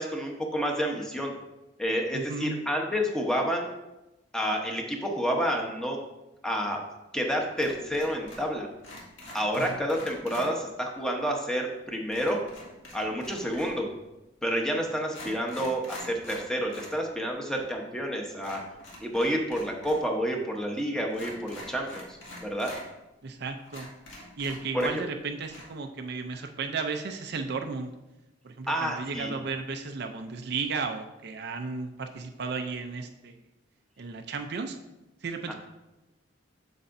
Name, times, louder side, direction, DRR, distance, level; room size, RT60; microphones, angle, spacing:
voice 1, 0.0-1.3 1.8-3.7 4.3-6.0 6.4-6.8 7.1-8.7 9.3-12.4 12.9-13.9 14.4-18.6 19.0-22.8 24.7-25.0 28.7-29.3 35.5-35.6, equal, 5° left, 1 dB, 0.9 m, -29 dB
voice 2, 2.1-2.6 9.6-9.8 23.2-23.9 24.4-27.9 28.4-33.3 34.0-34.8 35.2-35.5, right 4 dB, 55° right, 5 dB, 0.5 m, -34 dB
sound 1, 7.6-8.5 8.8-10.5 12.1-13.9 14.6-14.7 15.0-17.0 17.3-17.4 18.4-20.1 20.3-20.4 21.1-22.8 23.3-23.4 23.7-25.2 25.4-25.6, left 1 dB, 85° left, 2.0 m, -45 dB
8.2 x 6.8 x 2.6 m, 0.97 s
head